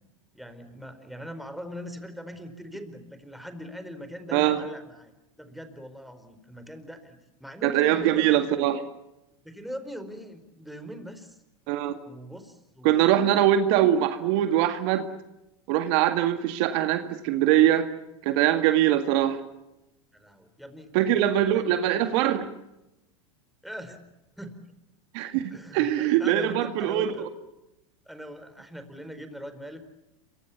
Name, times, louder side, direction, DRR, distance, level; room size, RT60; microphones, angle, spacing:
voice 1, 0.3-8.4 9.4-11.4 12.0-13.3 20.1-20.9 21.5-21.6 23.6-24.0 24.4-24.6 25.5-27.3 28.1-29.9, equal, ahead, 9 dB, 4.5 m, -41 dB
voice 2, 7.6-8.8 11.7-12.0 12.8-15.1 15.7-17.9 18.2-19.4 20.9-22.5 25.1-25.4 25.7-27.2, right 12 dB, 60° right, 8 dB, 2.2 m, -22 dB
27.5 x 24.5 x 7.2 m, 0.91 s
hypercardioid pair, 100°, 17 cm